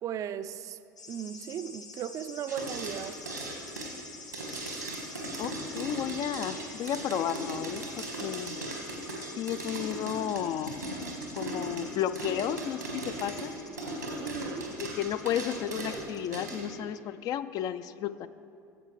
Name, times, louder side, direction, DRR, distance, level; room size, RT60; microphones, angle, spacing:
voice 1, 0.0-0.8 1.1-3.2 14.2-14.7, right 9 dB, 35° right, 0.4 m, -36 dB
sound 1, 1.0-16.5, left 4 dB, 80° left, 0.8 m, -48 dB
sound 2, 2.5-16.7, right 1 dB, 90° right, 1.6 m, -38 dB
voice 2, 5.4-8.6 9.4-10.8 11.3-13.5 14.8-18.3, left 10 dB, 40° left, 0.3 m, -33 dB
16.0 x 8.0 x 3.1 m
figure-of-eight pair, 70°, 9 cm